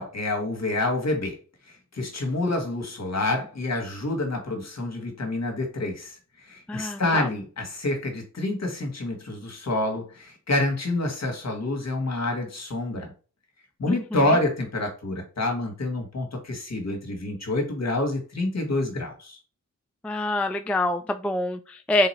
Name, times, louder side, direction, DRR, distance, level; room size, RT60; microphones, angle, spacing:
voice 1, 0.0-1.4 1.7-13.1 13.8-19.4, left 2 dB, 55° left, 3 dB, 1.6 m, -28 dB
voice 2, 6.7-7.3 13.9-14.3 20.0-22.1, left 1 dB, 5° left, 8 dB, 0.3 m, -26 dB
3.8 x 2.9 x 4.3 m, 0.36 s
wide cardioid pair, 75°, 32 cm